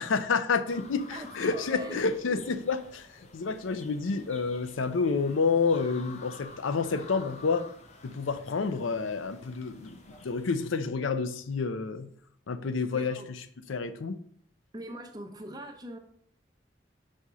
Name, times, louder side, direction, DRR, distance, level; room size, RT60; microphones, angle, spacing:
voice 1, 0.0-3.1 3.3-7.7 8.0-10.0 10.2-12.1 12.5-13.4 13.7-14.2, left 4 dB, 85° left, 0.5 m, -29 dB
sound 1, 0.7-10.5, left 3 dB, 35° left, 0.8 m, -50 dB
voice 2, 1.1-2.5 12.9-13.3 14.7-16.0, right 1 dB, 20° right, 0.7 m, -42 dB
5.0 x 4.2 x 4.7 m
head